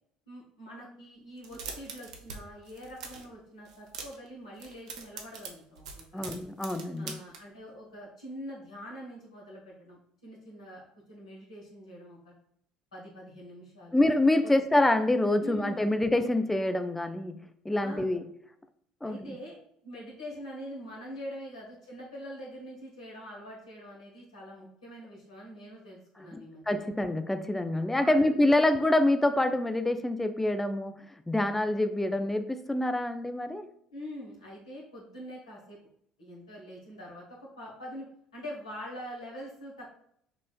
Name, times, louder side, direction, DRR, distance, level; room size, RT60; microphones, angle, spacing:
voice 1, 0.3-6.4 7.0-12.3 12.9-14.0 14.4-14.6 15.4-16.0 17.8-18.2 19.0-19.5 19.8-26.9 27.6-28.6 33.9-35.8 36.2-38.1 38.3-39.9, equal, 90° left, -4 dB, 1.1 m, -44 dB
sound 1, 1.4-2.4 2.6-3.3 3.7-4.3 4.6-7.4, right 5 dB, 80° right, 0.5 m, -42 dB
voice 2, 6.1-7.2 13.9-18.2 19.0-19.4 26.3-33.7, left 1 dB, 5° left, 8 dB, 0.3 m, -26 dB
5.7 x 2.4 x 2.3 m, 0.70 s
hypercardioid pair, 60°, 3 cm